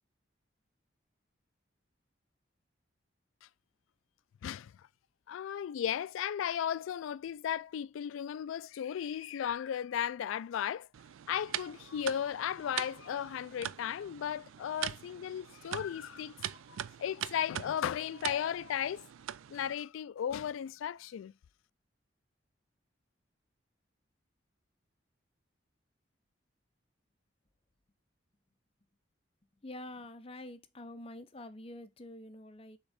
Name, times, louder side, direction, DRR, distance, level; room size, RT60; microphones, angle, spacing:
voice 1, 5.3-10.9 11.3-19.0 19.5-21.3, left 9 dB, 85° left, 0.3 m, -35 dB
sound 1, 10.9-19.7, right 11 dB, 90° right, 0.3 m, -43 dB
voice 2, 29.6-32.8, left 1 dB, 30° left, 0.6 m, -47 dB
6.6 x 3.6 x 4.0 m
head